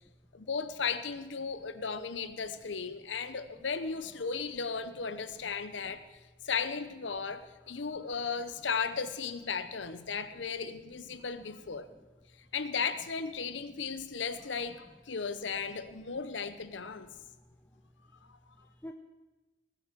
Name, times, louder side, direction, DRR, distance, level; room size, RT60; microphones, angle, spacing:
voice 1, 0.3-6.2 6.4-11.9 12.5-17.1 18.3-18.4, left 5 dB, 85° left, 12 dB, 0.8 m, -35 dB
voice 2, 17.3-18.2 18.6-18.9, left 1 dB, 10° left, 4 dB, 0.6 m, -52 dB
20.0 x 7.1 x 7.4 m, 1.2 s
head